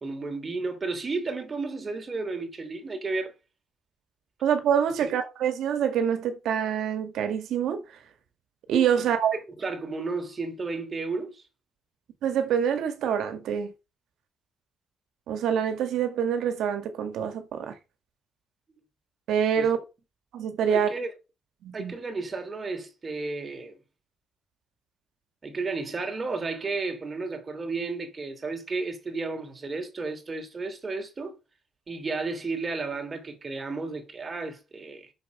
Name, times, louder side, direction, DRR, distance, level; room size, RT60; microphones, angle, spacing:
voice 1, 0.0-3.3 5.0-5.1 9.0-9.1 9.3-11.5 19.6-19.7 20.7-21.1 21.7-23.8 25.4-31.4 31.9-35.1, right 3 dB, 35° right, 3.2 m, -33 dB
voice 2, 4.4-7.8 8.7-9.3 12.2-13.7 15.3-17.7 19.3-19.8 20.3-20.9 21.6-21.9, right 8 dB, 80° right, 1.9 m, -26 dB
6.9 x 6.6 x 6.5 m
cardioid pair, 90°, 0 cm